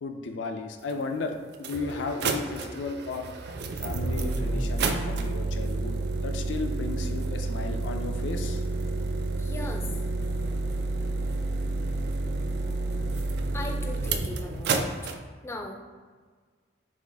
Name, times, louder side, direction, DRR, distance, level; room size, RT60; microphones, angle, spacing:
voice 1, 0.0-1.3 1.6-3.3 3.8-6.0 6.2-8.6, left 3 dB, 80° left, 5 dB, 0.4 m, -34 dB
sound 1, 0.9-1.0 1.5-15.2, right 3 dB, 60° right, 0.4 m, -29 dB
voice 2, 9.4-9.9 13.5-14.9 15.4-15.7, left 2 dB, 15° left, 3 dB, 0.4 m, -38 dB
6.0 x 2.5 x 3.4 m, 1.5 s
head